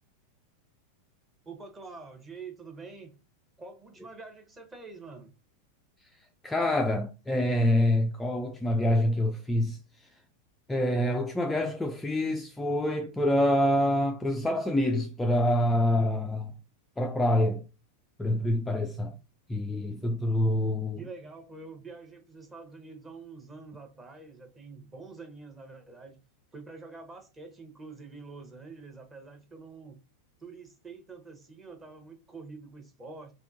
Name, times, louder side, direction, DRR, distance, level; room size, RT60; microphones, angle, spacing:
voice 1, 1.4-3.1 3.6-5.3 21.0-26.2 26.5-30.0 30.4-33.3, right 4 dB, 15° right, 0.9 m, -46 dB
voice 2, 6.4-10.1 10.7-16.5 17.0-17.7 18.2-19.2 19.5-21.0, left 1 dB, 10° left, 0.3 m, -26 dB
3.5 x 2.6 x 2.5 m
figure-of-eight pair, 90°, 0 cm